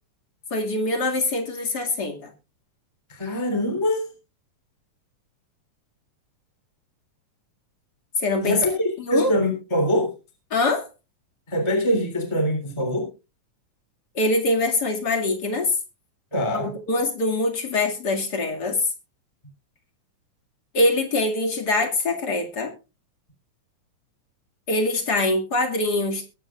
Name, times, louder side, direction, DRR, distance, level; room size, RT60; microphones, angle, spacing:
voice 1, 0.5-2.3 8.2-8.6 9.0-9.3 10.5-10.9 14.1-15.7 16.5-18.8 20.7-22.7 24.7-26.3, left 2 dB, 35° left, 2 dB, 2.4 m, -23 dB
voice 2, 3.1-4.0 8.4-10.1 11.5-13.1 16.3-16.7, equal, 10° left, 3 dB, 3.0 m, -23 dB
22.0 x 8.8 x 2.5 m, 0.30 s
omnidirectional pair, 3.8 m